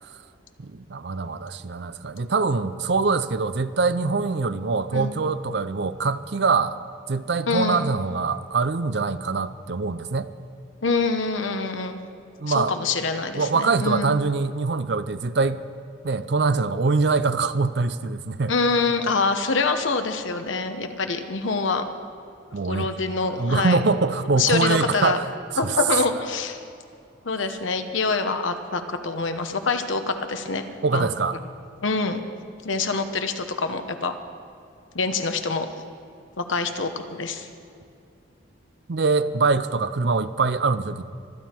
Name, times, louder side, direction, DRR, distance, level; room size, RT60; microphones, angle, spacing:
voice 1, 0.6-6.8 7.1-10.3 12.4-12.7 13.3-15.6 16.0-18.5 22.5-22.9 23.3-25.2 25.5-25.8 30.8-31.4 38.9-41.1, right 4 dB, 60° right, 13 dB, 0.5 m, -23 dB
voice 2, 7.5-7.8 10.8-12.0 12.5-14.2 18.5-21.8 22.7-23.8 24.4-25.2 25.6-26.6 27.2-30.7 30.9-31.1 31.8-32.2 32.6-34.1 34.9-35.7 36.4-37.5, left 4 dB, 75° left, 7 dB, 1.0 m, -25 dB
25.0 x 9.3 x 4.5 m, 2.4 s
head